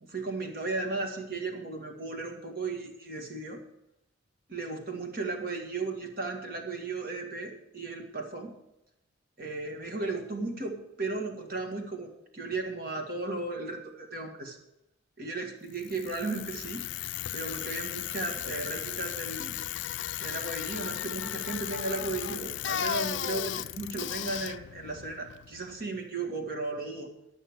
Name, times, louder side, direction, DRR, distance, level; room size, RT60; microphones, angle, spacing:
voice 1, 0.0-3.6 4.5-8.5 9.4-14.6 15.2-16.9 17.3-19.5 20.2-27.1, right 3 dB, 45° right, 3 dB, 1.9 m, -35 dB
Bicycle, 15.7-25.8, left 11 dB, 65° left, 0.4 m, -36 dB
12.0 x 6.3 x 8.0 m, 0.89 s
head